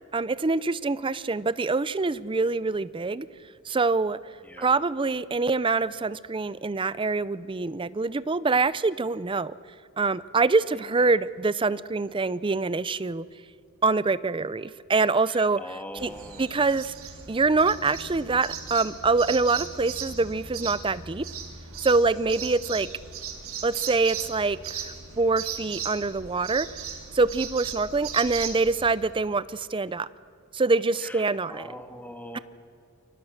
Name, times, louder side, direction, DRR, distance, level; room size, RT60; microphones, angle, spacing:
voice 1, 0.1-3.3 3.7-4.2 4.6-9.5 10.0-13.3 13.8-15.6 16.0-16.1 16.4-16.9 17.3-21.3 21.8-22.9 23.6-26.7 27.1-30.1 30.5-31.7 32.3-32.4, right 3 dB, 25° right, 17 dB, 0.5 m, -25 dB
voice 2, 4.4-4.7 15.3-16.8 31.0-32.4, left 1 dB, 10° left, 6 dB, 1.8 m, -42 dB
sound 1, 16.0-28.9, right 6 dB, 85° right, 3.0 m, -38 dB
28.5 x 24.0 x 6.6 m, 2.5 s
head